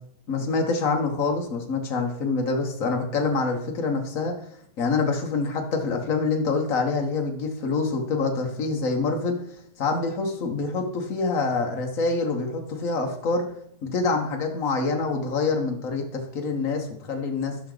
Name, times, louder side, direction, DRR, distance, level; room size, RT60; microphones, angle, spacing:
voice 1, 0.3-4.4 4.8-9.4 9.8-13.4 13.8-17.6, left 4 dB, 55° left, 2 dB, 0.8 m, -26 dB
13.5 x 6.0 x 3.9 m, 0.69 s
omnidirectional pair, 3.4 m